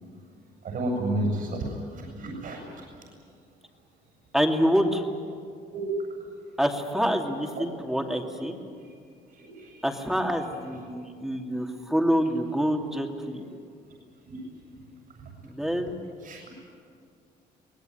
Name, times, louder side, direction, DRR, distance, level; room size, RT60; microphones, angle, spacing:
voice 1, 0.6-1.7 1.9-2.6 5.7-5.8 9.5-9.8 14.3-14.4 16.2-16.4, right 1 dB, 60° right, -1 dB, 7.3 m, -30 dB
voice 2, 4.3-5.0 6.6-8.5 9.8-13.4 15.4-16.0, equal, ahead, 2 dB, 2.7 m, -26 dB
24.0 x 19.0 x 9.5 m, 2.2 s
cardioid pair, 105°, 17 cm